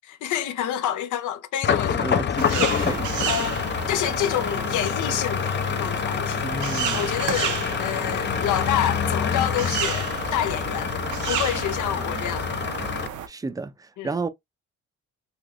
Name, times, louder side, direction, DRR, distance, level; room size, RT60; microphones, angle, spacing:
voice 1, 0.2-2.1 2.5-2.9 3.3-6.5 6.9-11.0 11.3-12.6 14.0-14.1, left 10 dB, 80° left, 0.7 m, -28 dB
sound 1, 1.6-13.1, left 8 dB, 35° left, 0.5 m, -27 dB
voice 2, 1.9-3.4 6.4-7.1 12.0-12.2 13.3-14.3, right 3 dB, 10° right, 0.4 m, -32 dB
sound 2, 2.4-13.3, right 9 dB, 80° right, 0.7 m, -32 dB
3.4 x 2.8 x 2.5 m
cardioid pair, 90°, 30 cm